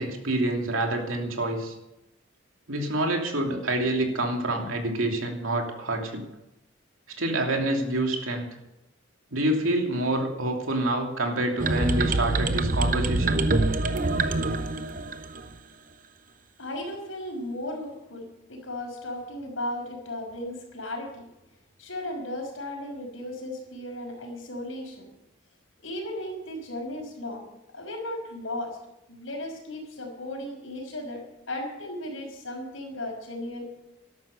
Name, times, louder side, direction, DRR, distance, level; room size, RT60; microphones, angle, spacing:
voice 1, 0.0-1.7 2.7-6.2 7.2-8.5 9.3-13.5, right 1 dB, 90° right, 2 dB, 2.9 m, -27 dB
sound 1, 11.6-15.5, right 2 dB, 40° right, 0.8 m, -25 dB
voice 2, 16.6-21.2 21.8-25.1 25.8-27.5 27.7-28.8 29.1-33.6, left 1 dB, 80° left, 1 dB, 5.7 m, -35 dB
12.5 x 12.0 x 6.7 m, 0.89 s
head